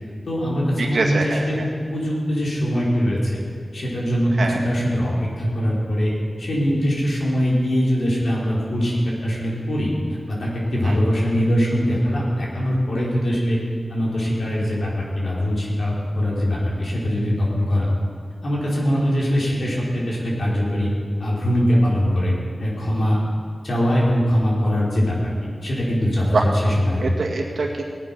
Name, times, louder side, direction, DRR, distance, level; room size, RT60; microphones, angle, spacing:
voice 1, 0.3-1.6 1.9-3.4 3.7-6.1 6.4-13.6 13.9-17.9 18.4-20.9 21.2-23.2 23.6-25.2 25.4-27.1, equal, 75° left, -6 dB, 4.9 m, -22 dB
voice 2, 0.8-1.7 4.4-4.6 10.8-11.0 26.3-26.5 27.0-27.8, right 3 dB, 80° right, 0 dB, 2.0 m, -24 dB
18.5 x 9.5 x 6.2 m, 2.2 s
cardioid pair, 60°, 0 cm